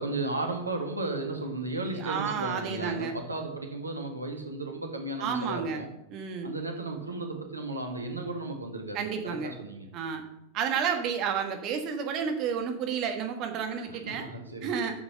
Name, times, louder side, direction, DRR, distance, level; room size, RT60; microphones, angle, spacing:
voice 1, 0.0-5.9 6.4-9.9 13.9-14.7, right 2 dB, 80° right, 3 dB, 1.7 m, -34 dB
voice 2, 1.9-3.2 5.2-5.8 6.1-6.5 8.9-9.6 9.9-10.2 10.5-14.3 14.6-15.0, right 7 dB, 40° right, 5 dB, 1.4 m, -31 dB
8.9 x 6.8 x 6.7 m, 0.89 s
figure-of-eight pair, 90°, 0 cm